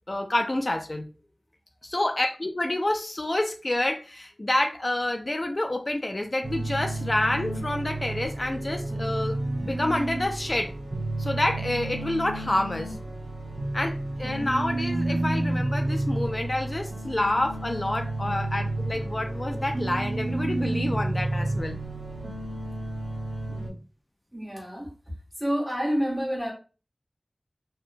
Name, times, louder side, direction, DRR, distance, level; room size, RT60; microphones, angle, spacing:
voice 1, 0.1-1.1 1.8-10.7 11.2-13.0 13.7-21.8, left 1 dB, 45° left, 0.3 m, -28 dB
sound 1, 6.4-23.7, right 2 dB, 80° right, 0.6 m, -31 dB
voice 2, 24.3-24.9 25.4-26.5, equal, 20° right, 1.2 m, -28 dB
2.8 x 2.1 x 2.5 m
wide cardioid pair, 55°, 0 cm